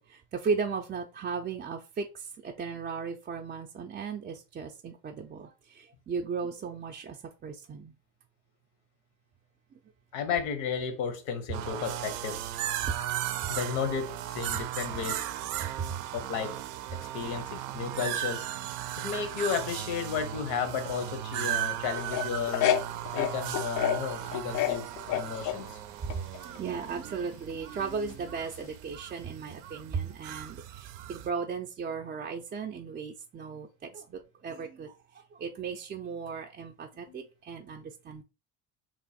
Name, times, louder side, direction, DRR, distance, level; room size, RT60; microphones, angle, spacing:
voice 1, 0.0-7.2 7.4-7.9 12.9-13.0 15.8-16.0 26.4-38.2, right 5 dB, 25° right, 0.4 m, -36 dB
voice 2, 10.1-12.4 13.5-15.3 16.1-16.6 16.9-18.5 18.7-22.7 23.1-25.8 37.1-37.3, left 6 dB, 85° left, 0.9 m, -33 dB
sound 1, 11.5-31.3, right 12 dB, 80° right, 0.5 m, -36 dB
sound 2, 22.0-24.0 24.3-25.6 26.1-26.6 28.6-28.7, left 10 dB, 60° left, 0.4 m, -28 dB
3.0 x 2.2 x 4.1 m
supercardioid pair, 100°, 35 cm